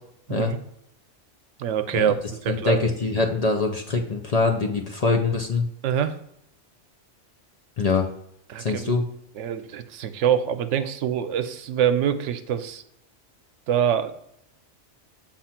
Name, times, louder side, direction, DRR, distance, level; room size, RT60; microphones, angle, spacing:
voice 1, 1.6-2.2 2.4-2.9 5.8-6.2 8.5-8.9 9.4-12.8 13.7-14.1, right 9 dB, 85° right, 10 dB, 0.9 m, -25 dB
voice 2, 2.5-5.7 7.8-8.1 8.6-9.0, left 4 dB, 45° left, 3 dB, 0.6 m, -23 dB
7.2 x 2.5 x 5.7 m, 0.77 s
omnidirectional pair, 1.2 m